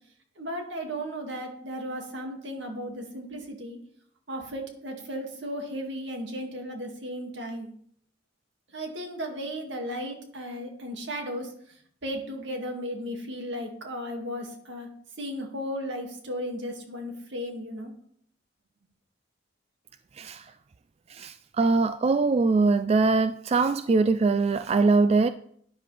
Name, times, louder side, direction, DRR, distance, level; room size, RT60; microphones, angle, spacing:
voice 1, 0.4-3.8 4.3-7.7 8.7-11.5 12.0-14.9 15.2-17.9, equal, 75° right, 2.2 m, -35 dB
voice 2, 21.1-25.3, right 3 dB, 35° right, 0.3 m, -22 dB
12.5 x 10.0 x 3.4 m
head